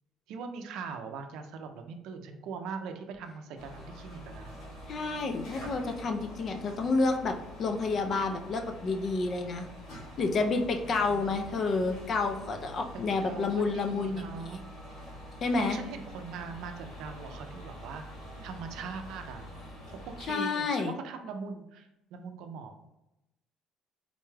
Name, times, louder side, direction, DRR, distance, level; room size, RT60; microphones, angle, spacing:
voice 1, 0.3-4.5 11.1-11.3 12.9-14.6 15.6-18.0 18.4-19.5 19.9-23.0, right 5 dB, 75° right, 6 dB, 0.4 m, -41 dB
sound 1, 3.6-20.3, equal, 70° left, 1.4 m, -46 dB
voice 2, 4.9-9.7 10.2-14.6 15.4-15.8 20.3-20.9, left 3 dB, 40° left, 5 dB, 0.4 m, -30 dB
3.8 x 2.2 x 3.2 m, 0.90 s
cardioid pair, 145°, 0 cm